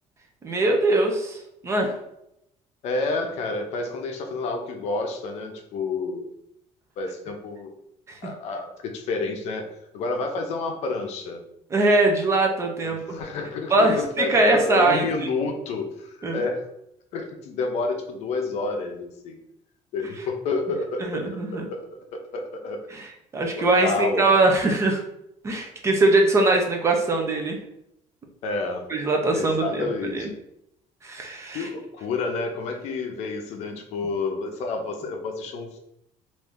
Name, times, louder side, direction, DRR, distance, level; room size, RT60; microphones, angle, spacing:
voice 1, 0.4-1.9 11.7-13.0 13.7-15.1 16.2-16.4 21.0-21.7 22.9-25.0 25.4-27.6 28.9-30.3 31.0-31.7, right 2 dB, 20° right, 2 dB, 0.5 m, -22 dB
voice 2, 2.8-6.3 7.0-7.7 8.2-9.6 9.9-11.4 12.8-16.6 17.1-19.4 19.9-22.8 23.6-24.3 28.4-28.9 29.3-30.3 31.5-35.8, left 3 dB, 55° left, 4 dB, 0.6 m, -29 dB
3.2 x 2.5 x 3.6 m, 0.79 s
cardioid pair, 170°, 13 cm